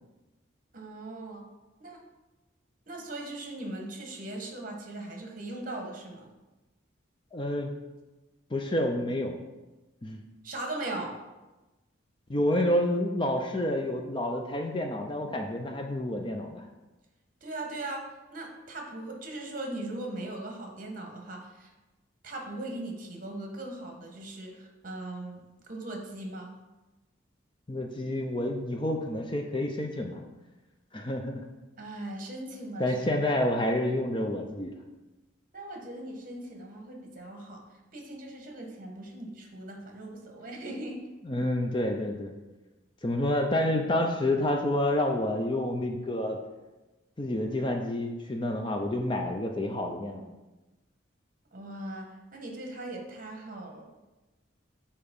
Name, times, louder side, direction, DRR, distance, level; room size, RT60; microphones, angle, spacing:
voice 1, 0.7-1.5 1.8-2.0 2.9-6.3 10.4-11.1 17.4-18.0 18.3-21.7 22.2-26.5 31.8-32.9 35.5-37.6 37.9-41.0 51.5-53.8, right 2 dB, 40° right, 1 dB, 1.3 m, -39 dB
voice 2, 7.3-7.7 8.5-9.4 10.0-10.2 12.3-16.6 27.7-30.2 30.9-31.4 32.8-34.7 41.3-42.3 43.0-46.4 47.2-50.2, left 1 dB, 25° left, 3 dB, 0.5 m, -29 dB
6.8 x 4.3 x 5.3 m, 1.1 s
head